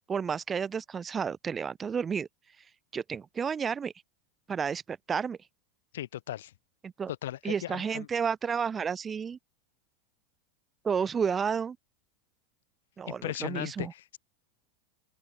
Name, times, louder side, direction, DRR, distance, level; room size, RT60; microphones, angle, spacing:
voice 1, 0.1-2.3 2.9-3.9 4.5-5.4 6.8-7.1 7.4-9.4 10.8-11.8 13.0-13.9, right 6 dB, 20° right, 1.8 m, -31 dB
voice 2, 5.9-6.5 7.2-8.1 13.1-14.2, left 13 dB, 85° left, 2.0 m, -37 dB
open air
supercardioid pair, 130°, 0 cm